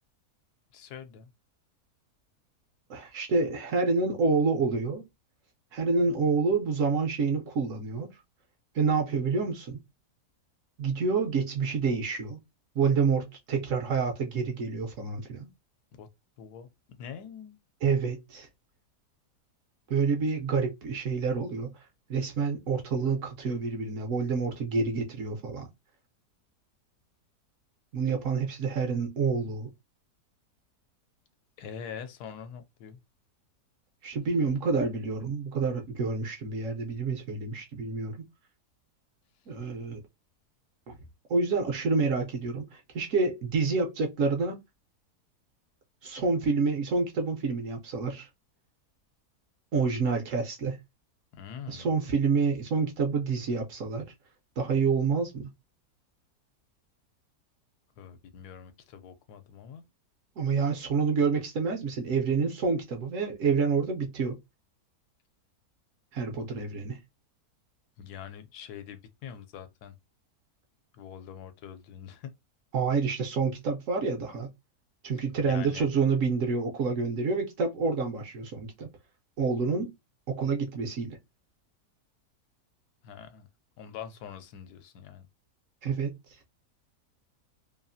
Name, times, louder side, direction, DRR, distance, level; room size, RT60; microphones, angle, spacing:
voice 1, 0.7-1.3 16.0-16.1 16.4-17.6 31.6-33.0 51.3-51.9 58.0-59.8 68.0-69.9 70.9-72.3 75.5-75.9 83.0-83.5 83.8-85.2, left 8 dB, 80° left, 1.1 m, -44 dB
voice 2, 2.9-5.0 5.7-8.1 8.7-9.8 10.8-12.4 12.8-15.5 17.8-18.5 19.9-21.7 22.1-25.7 27.9-29.7 34.0-38.2 39.5-40.0 40.9-41.0 41.3-44.6 46.0-48.3 49.7-50.8 51.7-54.1 54.6-55.5 60.4-64.4 66.1-67.0 72.7-74.5 75.0-78.9 79.4-79.9 80.3-81.2 85.8-86.2, right 4 dB, 65° right, 0.8 m, -28 dB
2.8 x 2.3 x 2.5 m
omnidirectional pair, 1.6 m